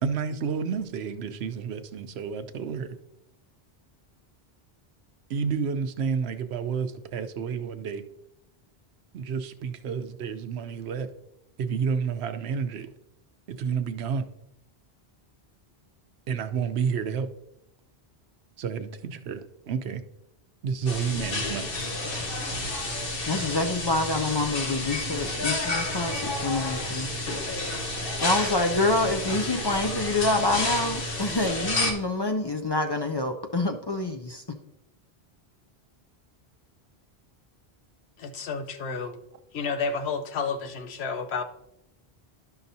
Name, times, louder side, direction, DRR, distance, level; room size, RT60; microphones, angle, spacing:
voice 1, 0.0-2.9 5.3-8.0 9.1-11.1 11.6-12.9 13.5-14.3 16.3-17.3 18.6-20.0 20.6-21.7, right 6 dB, 80° right, 0.9 m, -30 dB
sound 1, 20.9-31.9, left 2 dB, 60° left, 1.3 m, -30 dB
voice 2, 23.3-27.1 28.2-34.6, left 2 dB, 40° left, 0.3 m, -27 dB
voice 3, 38.2-39.2 39.5-41.4, left 5 dB, 85° left, 1.0 m, -31 dB
11.5 x 5.7 x 2.7 m
omnidirectional pair, 1.1 m